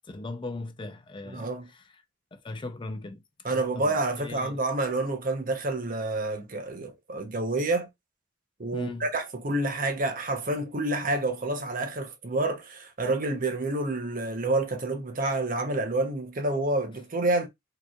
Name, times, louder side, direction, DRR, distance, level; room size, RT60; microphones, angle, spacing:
voice 1, 0.1-1.5 2.3-3.2 3.5-4.6 8.7-9.1, left 2 dB, 25° left, 0.5 m, -38 dB
voice 2, 1.3-1.7 3.4-7.9 8.6-17.5, right 2 dB, 45° right, 0.9 m, -28 dB
4.7 x 3.0 x 2.4 m
head